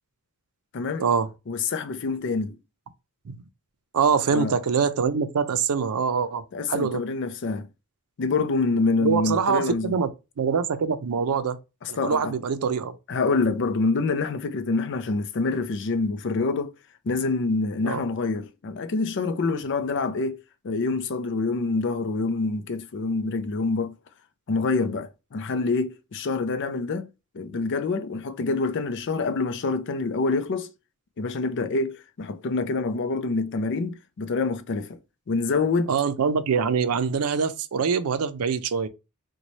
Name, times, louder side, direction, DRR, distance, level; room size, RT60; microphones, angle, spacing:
voice 1, 0.7-1.1 1.5-2.6 4.3-4.6 6.5-7.7 8.2-9.9 11.8-12.4 13.1-16.7 17.1-20.4 20.6-24.0 24.5-27.1 27.3-30.7 31.2-35.0 35.3-35.9, left 3 dB, 55° left, 0.4 m, -26 dB
voice 2, 3.9-6.4 6.7-7.0 9.0-10.1 10.4-11.6 11.9-12.9 17.8-18.0 35.9-38.9, right 6 dB, 85° right, 0.5 m, -24 dB
4.0 x 2.2 x 3.0 m
head